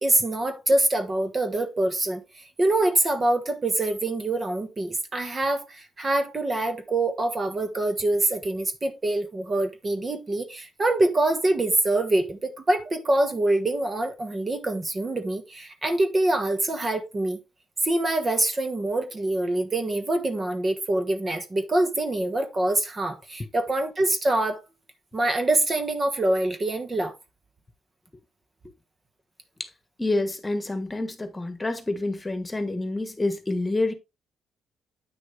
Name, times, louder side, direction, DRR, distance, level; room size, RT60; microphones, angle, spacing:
voice 1, 0.0-17.4 17.8-24.6 25.1-27.1, right 2 dB, 30° right, 1.4 m, -25 dB
voice 2, 30.0-33.9, left 2 dB, 15° left, 1.6 m, -28 dB
9.2 x 6.2 x 3.4 m
cardioid pair, 100°, 0 cm